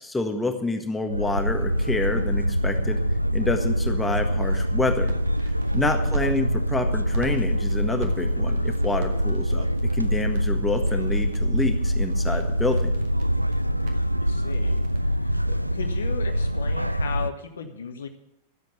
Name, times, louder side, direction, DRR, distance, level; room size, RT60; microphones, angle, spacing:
voice 1, 0.0-3.0 3.3-5.1 5.7-9.7 9.9-12.9, left 2 dB, 10° left, 5 dB, 1.6 m, -28 dB
sound 1, 1.1-17.3, equal, 85° right, 0.4 m, -24 dB
sound 2, 4.8-6.4 6.9-15.0, right 3 dB, 55° right, 2.0 m, -41 dB
voice 2, 5.9-6.3 13.6-14.8 15.2-18.1, left 6 dB, 65° left, 6 dB, 1.7 m, -37 dB
13.5 x 7.7 x 8.9 m, 0.80 s
figure-of-eight pair, 90°, 0 cm